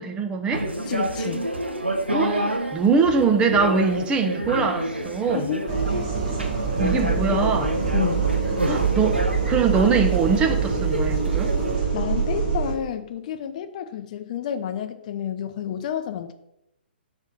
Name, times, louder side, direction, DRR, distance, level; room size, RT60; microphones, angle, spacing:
voice 1, 0.0-0.7 2.1-5.5 6.8-7.7 8.7-11.5, right 5 dB, 15° right, 5 dB, 0.5 m, -23 dB
sound 1, 0.5-11.8, right 1 dB, 90° right, 0.8 m, -29 dB
voice 2, 0.8-1.5 5.3-6.0 7.0-7.5 7.9-8.3 11.9-16.3, left 9 dB, 45° left, 9 dB, 0.5 m, -30 dB
sound 2, 5.7-12.7, right 6 dB, 40° right, 1.5 m, -24 dB
6.4 x 3.2 x 5.2 m, 0.83 s
figure-of-eight pair, 125°, 6 cm